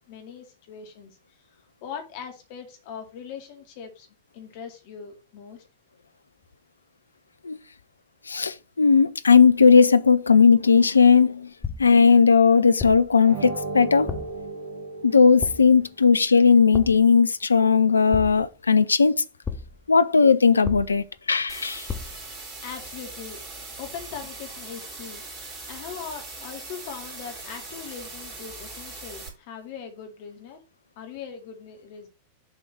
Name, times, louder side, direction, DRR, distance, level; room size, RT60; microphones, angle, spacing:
voice 1, 0.1-1.1 1.8-4.1 4.3-5.6 22.2-23.4 23.8-25.2 25.7-30.6 31.0-32.1, left 7 dB, 50° left, 2.2 m, -40 dB
voice 2, 8.3-11.5 11.8-14.1 15.0-19.2 19.9-21.9, left 5 dB, 75° left, 0.5 m, -17 dB
sound 1, 11.6-12.1 12.8-13.2 14.1-14.5 15.4-15.9 16.7-17.2 18.1-18.7 19.4-19.9 20.6-21.2 21.9-22.3, left 5 dB, 20° left, 0.9 m, -34 dB
sound 2, 13.2-15.9, right 3 dB, 65° right, 2.5 m, -35 dB
sound 3, 21.5-29.3, right 3 dB, 25° right, 3.5 m, -40 dB
7.2 x 3.8 x 6.0 m
figure-of-eight pair, 90°, 0 cm